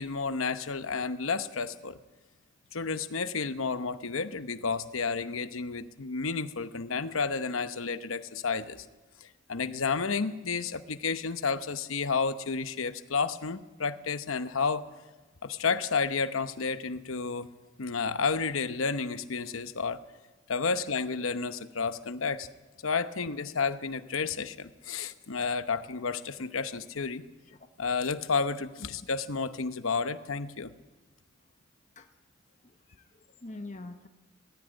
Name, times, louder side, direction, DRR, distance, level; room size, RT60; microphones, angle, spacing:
voice 1, 0.0-2.0 2.7-8.9 9.5-14.8 15.4-17.5 17.8-20.0 20.5-22.5 22.8-27.2 27.8-30.7, left 5 dB, 85° left, 12 dB, 0.9 m, -31 dB
voice 2, 32.6-34.1, left 2 dB, 35° left, 6 dB, 0.9 m, -45 dB
19.5 x 15.5 x 8.9 m, 1.2 s
head